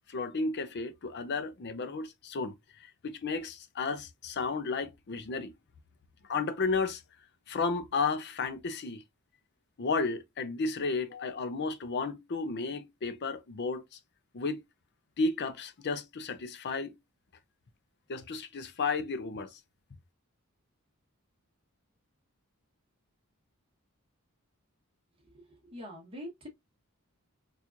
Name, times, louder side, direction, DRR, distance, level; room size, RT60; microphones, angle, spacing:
voice 1, 0.1-5.5 6.3-7.0 7.5-9.0 9.8-14.0 14.3-14.6 15.2-16.9 18.1-19.6, left 4 dB, 50° left, 0.5 m, -33 dB
voice 2, 25.3-26.5, equal, 25° right, 1.1 m, -44 dB
4.3 x 2.4 x 2.5 m
head